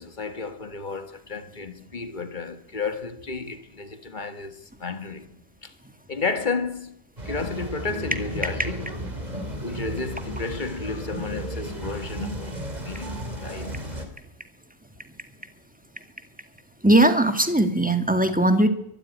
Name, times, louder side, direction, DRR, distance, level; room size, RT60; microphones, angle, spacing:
voice 1, 0.0-5.4 5.6-5.7 6.1-7.0 7.3-8.9 9.6-13.7, left 4 dB, 45° left, 1.8 m, -32 dB
sound 1, 7.2-14.1, right 1 dB, 40° right, 3.1 m, -34 dB
voice 2, 16.8-18.7, right 1 dB, 5° right, 1.8 m, -19 dB
23.5 x 13.0 x 9.8 m
omnidirectional pair, 1.2 m